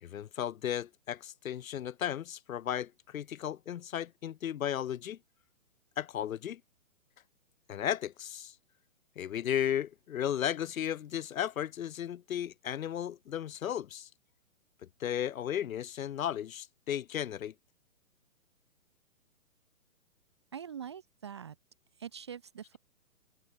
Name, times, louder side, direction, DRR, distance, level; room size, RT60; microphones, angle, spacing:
voice 1, 0.0-5.2 6.0-6.6 7.7-8.5 9.2-14.1 15.0-17.5, left 10 dB, 70° left, 0.8 m, -35 dB
voice 2, 20.5-21.6 22.0-22.8, right 8 dB, 20° right, 0.5 m, -43 dB
hypercardioid pair, 150°, 42 cm